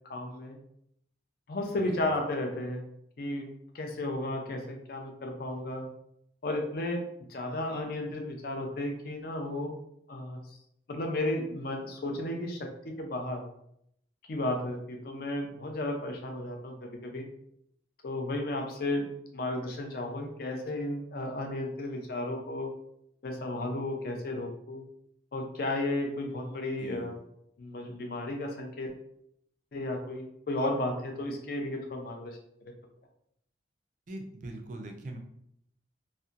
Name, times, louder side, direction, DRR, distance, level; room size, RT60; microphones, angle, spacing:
voice 1, 0.0-0.6 1.5-2.8 3.2-3.5 3.7-5.9 6.4-7.0 7.3-9.7 10.1-10.4 10.9-12.6 12.8-13.4 14.3-17.2 18.0-19.0 19.3-22.7 23.2-24.8 25.3-27.1 27.6-28.9 29.7-32.4, left 1 dB, 50° left, 3 dB, 0.4 m, -33 dB
voice 2, 26.8-27.1 34.1-35.2, right 1 dB, 40° right, 3 dB, 0.4 m, -41 dB
2.7 x 2.1 x 2.4 m, 0.74 s
head